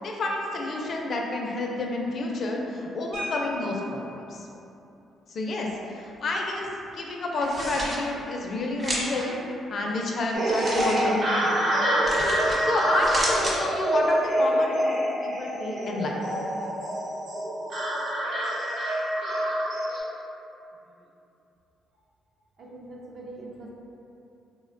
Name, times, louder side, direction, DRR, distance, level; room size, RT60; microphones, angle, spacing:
voice 1, 0.0-4.5 5.3-6.7 6.9-9.4 9.7-11.7 12.6-16.2, left 2 dB, 55° left, 0 dB, 0.4 m, -29 dB
sound 1, 3.1-4.2 5.6-5.8 6.1-6.3 6.7-7.0, equal, 90° right, 1.2 m, -38 dB
sound 2, 7.3-8.0 8.8-9.2 10.4-11.0 12.0-12.6 12.9-13.6, equal, 30° right, 1.0 m, -31 dB
sound 3, 10.3-20.0, right 1 dB, 70° right, 1.0 m, -26 dB
voice 2, 22.6-23.7, right 2 dB, 55° right, -4 dB, 0.5 m, -42 dB
3.4 x 2.1 x 2.5 m, 2.8 s
cardioid pair, 90°, 0 cm